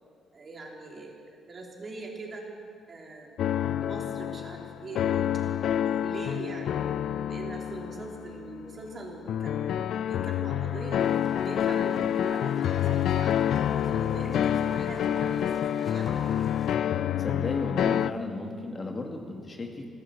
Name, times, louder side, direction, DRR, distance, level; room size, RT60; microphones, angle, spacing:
voice 1, 0.3-2.5 2.9-5.3 5.6-6.8 7.3-11.0 11.4-13.4 13.8-15.5 15.8-16.4, right 3 dB, 40° right, -1 dB, 3.3 m, -42 dB
sound 1, 3.4-18.1, left 10 dB, 70° left, 0.3 m, -28 dB
sound 2, 11.0-16.7, right 2 dB, 25° right, 2.2 m, -49 dB
voice 2, 17.2-19.9, left 2 dB, 30° left, 2 dB, 2.0 m, -34 dB
15.5 x 12.0 x 7.7 m, 2.2 s
cardioid pair, 90°, 0 cm